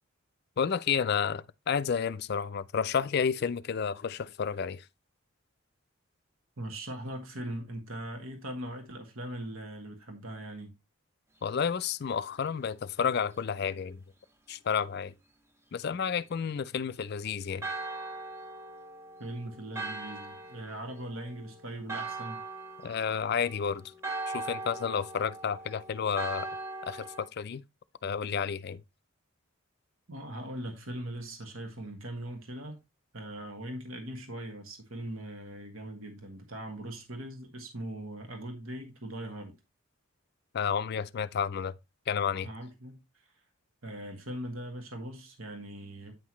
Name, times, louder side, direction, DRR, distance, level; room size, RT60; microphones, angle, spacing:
voice 1, 0.6-4.8 11.4-14.0 14.5-15.1 15.7-17.7 22.8-23.9 24.3-26.5 26.8-27.6 28.0-28.8 40.5-41.7 42.1-42.5, left 7 dB, 50° left, 0.4 m, -31 dB
voice 2, 6.6-10.7 19.2-22.4 30.1-32.8 33.1-39.5 42.4-43.2 43.8-46.1, right 1 dB, 75° right, 1.6 m, -40 dB
Church bell, 17.6-27.3, right 3 dB, 10° right, 0.7 m, -40 dB
9.0 x 5.7 x 3.1 m
head